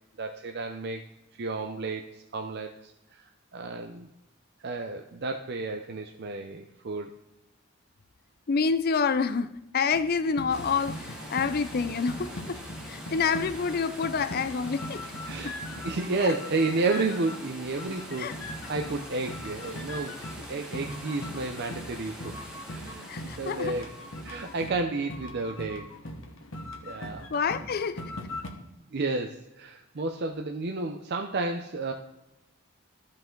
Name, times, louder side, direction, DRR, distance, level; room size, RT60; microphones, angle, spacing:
voice 1, 0.2-1.0 1.3-2.9 3.2-4.1 4.6-7.1 15.3-15.5 15.8-18.3 18.7-20.2 20.5-22.4 22.7-23.9 24.2-25.9 26.8-27.3 28.9-31.9, right 3 dB, 50° right, 0.5 m, -31 dB
voice 2, 8.5-15.1 15.4-15.6 16.2-16.3 18.2-18.3 23.1-23.8 27.3-28.0, left 5 dB, 45° left, 0.5 m, -28 dB
sound 1, 9.9-17.5 17.8-28.5, left 1 dB, 65° left, 1.2 m, -41 dB
sound 2, 10.5-24.7, equal, 5° right, 1.6 m, -44 dB
14.0 x 5.3 x 3.8 m
head